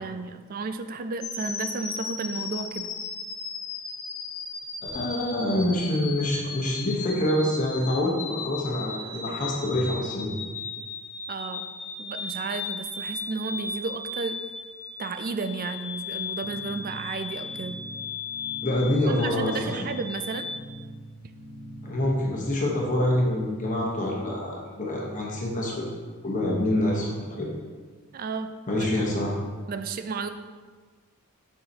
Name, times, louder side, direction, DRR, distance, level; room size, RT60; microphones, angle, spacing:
voice 1, 0.0-2.9 11.3-11.7 12.0-14.4 15.0-17.8 18.8-20.5 28.1-29.1 29.7-30.3, right 4 dB, 40° right, 9 dB, 0.3 m, -33 dB
sound 1, 1.2-20.6, left 4 dB, 75° left, 0.9 m, -36 dB
voice 2, 4.8-10.3 18.6-19.7 21.8-25.9 26.2-27.5 28.7-29.3, left 1 dB, 35° left, -2 dB, 1.0 m, -26 dB
sound 2, 16.4-23.2, right 1 dB, 10° right, 0.7 m, -43 dB
6.8 x 5.7 x 2.8 m, 1.5 s
head